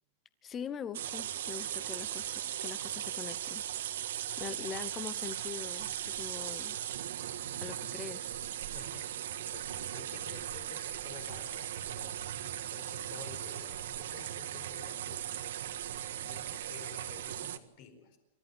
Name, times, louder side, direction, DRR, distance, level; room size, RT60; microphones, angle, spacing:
voice 1, 0.4-3.6 4.4-6.8 7.6-8.3, left 7 dB, 15° left, 16 dB, 0.9 m, -43 dB
sound 1, 0.9-17.6, right 11 dB, 75° right, 1.7 m, -38 dB
voice 2, 8.6-15.6 16.2-18.2, left 7 dB, 40° left, 7 dB, 4.6 m, -53 dB
28.5 x 14.0 x 9.9 m, 0.86 s
supercardioid pair, 180°, 0 cm